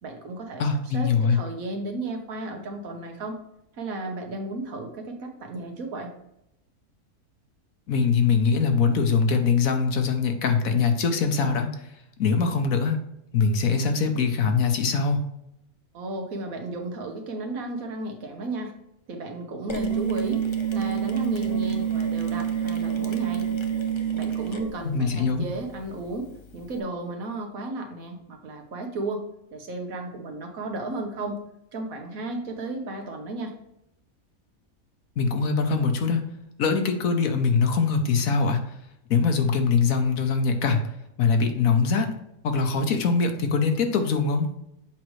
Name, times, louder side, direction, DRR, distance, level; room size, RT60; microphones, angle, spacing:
voice 1, 0.0-3.4 3.7-6.1 15.9-18.7 19.1-20.4 20.7-23.5 24.1-29.2 29.5-31.4 31.7-33.6, right 2 dB, 65° right, 3 dB, 1.5 m, -34 dB
voice 2, 0.6-1.4 7.9-11.7 12.2-13.0 13.3-15.2 24.8-25.5 35.2-36.2 36.6-38.6 39.1-40.8 41.2-42.1 42.4-44.5, left 5 dB, 70° left, 6 dB, 1.3 m, -22 dB
Mechanisms, 19.7-26.8, left 3 dB, 30° left, 0.5 m, -41 dB
sound 1, 19.7-24.7, right 9 dB, 5° right, 0.9 m, -27 dB
7.4 x 5.1 x 3.2 m, 0.83 s
omnidirectional pair, 1.6 m